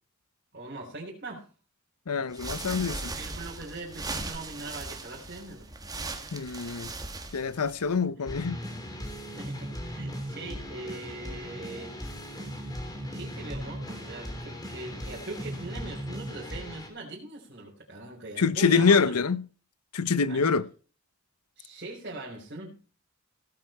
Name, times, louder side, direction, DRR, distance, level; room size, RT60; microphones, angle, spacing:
voice 1, 0.5-1.5 3.2-5.7 8.1-8.3 9.3-12.0 13.1-19.2 20.3-20.4 21.6-22.8, right 2 dB, 45° right, 3.6 m, -41 dB
voice 2, 2.1-3.1 6.3-6.9 7.3-8.6 18.4-19.5 19.9-20.7, left 5 dB, 90° left, 0.8 m, -25 dB
sound 1, 2.3-8.0, right 3 dB, 15° right, 1.6 m, -38 dB
sound 2, 8.3-16.9, equal, 15° left, 3.3 m, -38 dB
17.0 x 8.2 x 4.3 m
head